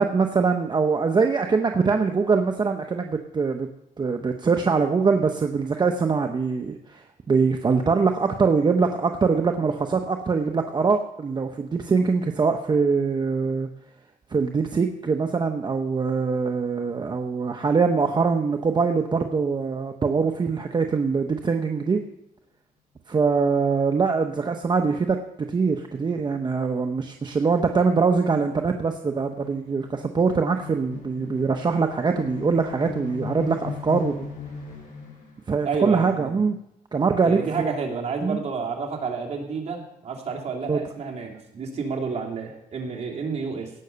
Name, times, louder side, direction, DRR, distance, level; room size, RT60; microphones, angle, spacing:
voice 1, 0.0-3.7 4.0-13.7 14.3-22.0 23.1-25.2 25.5-34.3 35.5-36.6 36.9-37.4 38.2-38.4 40.7-40.8, right 5 dB, 30° right, 5 dB, 0.8 m, -23 dB
sound 1, 25.3-25.4 25.7-35.4, left 6 dB, 70° left, 6.6 m, -39 dB
voice 2, 35.6-36.4 37.2-43.7, right 5 dB, 50° right, -1 dB, 2.9 m, -30 dB
17.5 x 6.2 x 6.8 m, 0.83 s
cardioid pair, 130°, 15 cm